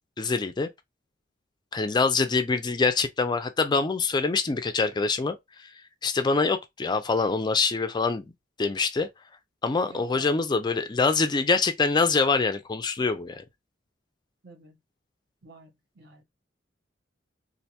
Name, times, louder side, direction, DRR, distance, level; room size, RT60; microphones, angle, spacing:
voice 1, 0.2-0.7 1.7-5.7 6.0-8.3 8.6-9.1 9.6-13.4, left 4 dB, 25° left, 0.3 m, -25 dB
voice 2, 9.9-10.4 10.7-10.8 14.4-14.8 15.4-16.2, right 2 dB, 60° right, 1.0 m, -49 dB
3.2 x 2.5 x 2.8 m
head